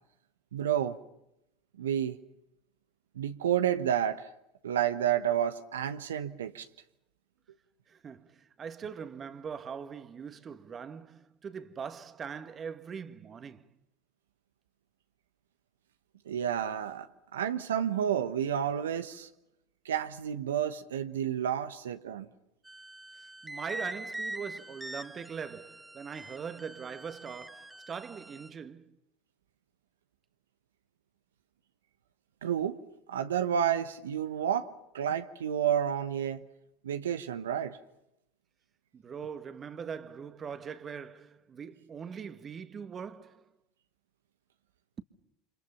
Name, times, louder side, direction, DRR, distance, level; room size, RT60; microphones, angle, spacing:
voice 1, 0.5-1.0 1.8-2.2 3.1-4.3 4.6-6.7 16.3-17.1 17.3-19.3 19.8-22.3 32.4-32.8 33.1-34.7 34.9-36.4 36.8-37.8, right 9 dB, 80° right, 1.2 m, -30 dB
voice 2, 7.9-13.7 23.4-28.9 38.9-43.5, right 6 dB, 30° right, 1.7 m, -41 dB
sound 1, 22.6-28.5, right 1 dB, 5° right, 1.1 m, -43 dB
29.0 x 26.5 x 5.8 m
hypercardioid pair, 80°, 0 cm